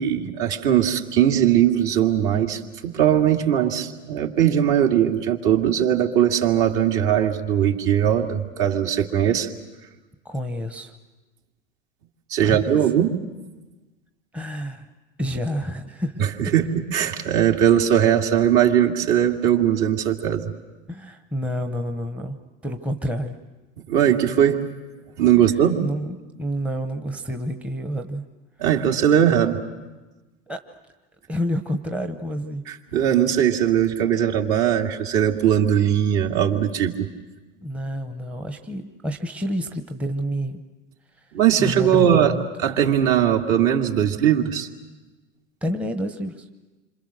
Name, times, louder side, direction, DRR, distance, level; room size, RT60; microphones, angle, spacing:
voice 1, 0.0-9.5 12.3-13.2 16.2-20.4 23.9-24.6 25.2-25.8 28.6-29.6 32.7-37.1 41.3-42.3 42.6-44.7, right 10 dB, 50° right, 2 dB, 2.5 m, -20 dB
voice 2, 10.2-10.9 12.4-12.7 14.3-14.9 15.2-16.3 20.9-23.4 25.8-28.2 30.5-30.6 31.3-32.6 37.6-40.6 41.2-41.3 41.6-42.5 45.6-46.5, equal, 5° right, 5 dB, 1.0 m, -29 dB
27.5 x 26.5 x 6.6 m, 1.2 s
hypercardioid pair, 115°, 38 cm